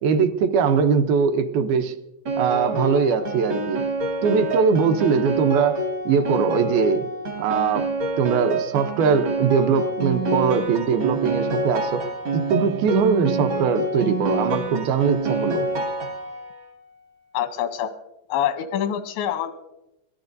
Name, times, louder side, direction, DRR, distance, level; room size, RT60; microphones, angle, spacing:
voice 1, 0.0-1.9 2.4-3.8 4.2-7.0 7.4-7.8 8.2-12.0 12.3-15.6, right 6 dB, 75° right, 8 dB, 2.3 m, -21 dB
Piano, 2.3-16.6, right 2 dB, 60° right, 1.3 m, -27 dB
voice 2, 17.3-17.9 18.3-19.5, left 10 dB, 85° left, 8 dB, 3.1 m, -25 dB
24.0 x 17.5 x 2.6 m, 0.90 s
omnidirectional pair, 5.0 m